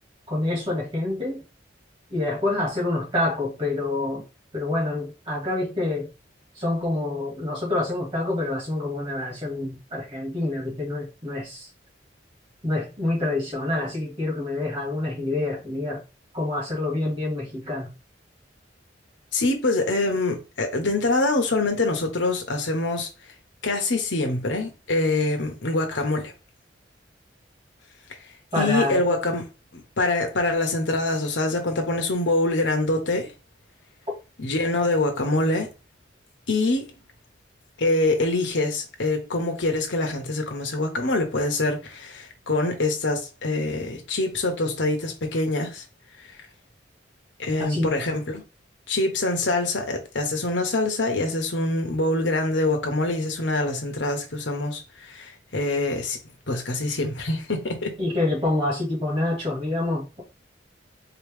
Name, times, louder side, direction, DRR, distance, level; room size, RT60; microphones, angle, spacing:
voice 1, 0.3-1.4 2.1-4.2 4.5-6.1 6.6-11.7 12.6-16.0 16.3-17.9 28.5-29.0 47.6-47.9 58.0-60.2, left 2 dB, 30° right, 2.0 m, -27 dB
voice 2, 19.3-23.1 23.6-26.3 28.6-33.3 34.4-35.7 36.5-36.9 37.8-45.8 47.4-48.4 48.9-56.2 56.5-57.9, left 2 dB, 80° left, 1.1 m, -25 dB
4.2 x 3.0 x 3.5 m
head